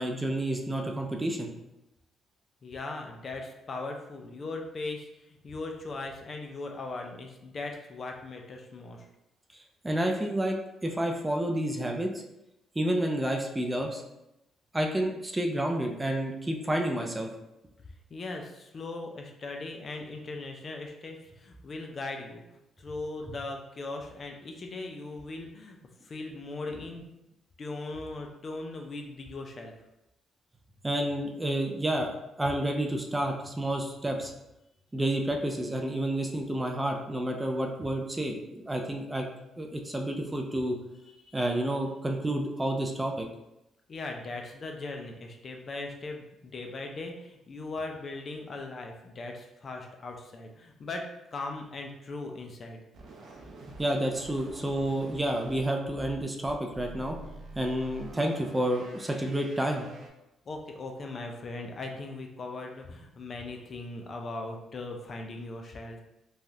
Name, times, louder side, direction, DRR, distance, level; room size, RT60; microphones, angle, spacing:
voice 1, 0.0-1.5 9.5-10.6 10.8-12.1 12.8-14.0 14.7-17.3 30.8-32.1 32.4-34.3 34.9-39.3 39.6-40.8 41.3-43.3 53.8-57.2 57.6-59.9, right 1 dB, 15° right, 2 dB, 0.4 m, -30 dB
voice 2, 2.6-9.1 18.1-22.4 22.8-27.1 27.6-29.7 41.1-41.5 43.9-52.8 60.5-66.0, left 2 dB, 45° left, 2 dB, 0.4 m, -39 dB
sound 1, 52.9-60.1, right 2 dB, 70° right, 0.6 m, -47 dB
3.2 x 2.3 x 2.7 m, 0.90 s
cardioid pair, 90°, 0 cm